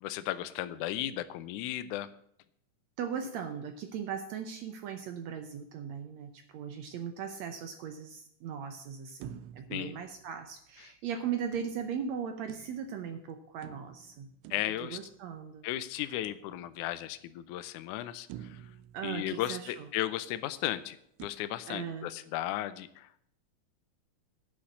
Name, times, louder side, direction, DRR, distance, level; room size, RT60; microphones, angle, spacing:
voice 1, 0.0-2.1 9.7-9.9 14.5-15.0 15.6-18.6 19.0-23.3, left 13 dB, 80° left, 12 dB, 1.9 m, -35 dB
voice 2, 3.0-14.3 14.8-15.7 18.9-19.9 21.7-22.1, right 7 dB, 70° right, 7 dB, 1.8 m, -38 dB
sound 1, 9.2-10.8 11.5-13.1 13.6-15.5 16.2-17.1 17.6-17.7 18.3-20.0 21.2-21.3, right 12 dB, 90° right, 2.2 m, -50 dB
10.0 x 6.2 x 8.4 m, 0.70 s
omnidirectional pair, 3.7 m